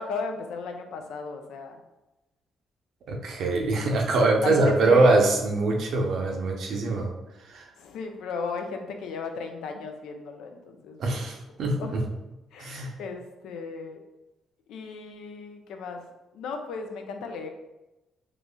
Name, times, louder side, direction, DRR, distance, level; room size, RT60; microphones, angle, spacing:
voice 1, 0.0-1.8 4.4-5.2 7.8-11.0 11.8-11.9 12.5-14.0 14.7-16.1 16.3-17.5, left 4 dB, 85° left, 5 dB, 0.5 m, -35 dB
voice 2, 3.1-7.1 7.5-7.6 11.0-12.0 12.6-12.9, right 2 dB, 70° right, 1 dB, 0.6 m, -23 dB
3.9 x 3.1 x 2.3 m, 0.99 s
cardioid pair, 90°, 0 cm